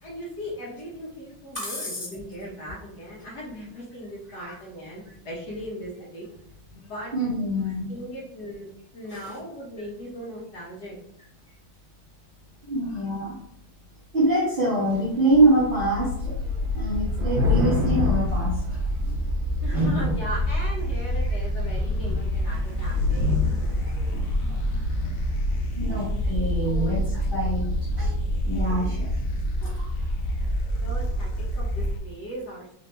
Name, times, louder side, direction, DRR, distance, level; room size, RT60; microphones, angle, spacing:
voice 1, 0.0-6.2 6.7-7.1 7.9-11.0 19.6-23.4 26.2-26.3 26.6-27.4 30.4-32.7, equal, 55° left, -4 dB, 1.3 m, -38 dB
voice 2, 1.5-2.0 4.4-4.5 7.1-7.9 9.1-9.2 12.6-13.3 14.1-16.4 16.7-18.6 19.7-20.1 23.8-24.2 25.0-25.1 25.8-27.0 27.3-27.7 28.0-28.1 28.4-29.1 29.6-29.8, right 1 dB, 35° right, -8 dB, 0.9 m, -25 dB
Thunder / Rain, 14.9-15.0 15.3-19.4 20.1-20.6 21.0-21.2 21.4-25.2, left 4 dB, 70° right, 1.3 m, -29 dB
sound 1, 15.5-32.0, equal, 85° left, 0.7 m, -27 dB
4.0 x 2.6 x 3.3 m, 0.71 s
omnidirectional pair, 2.3 m